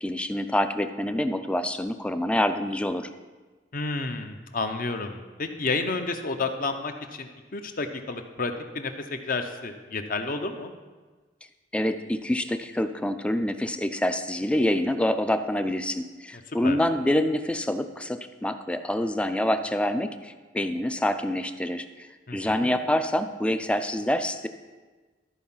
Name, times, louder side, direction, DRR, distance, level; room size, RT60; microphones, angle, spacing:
voice 1, 0.0-3.1 11.7-24.5, left 1 dB, 5° left, 9 dB, 0.4 m, -26 dB
voice 2, 3.7-10.7 16.6-16.8 22.3-22.7, left 3 dB, 50° left, 6 dB, 0.8 m, -31 dB
13.0 x 4.6 x 5.6 m, 1.3 s
head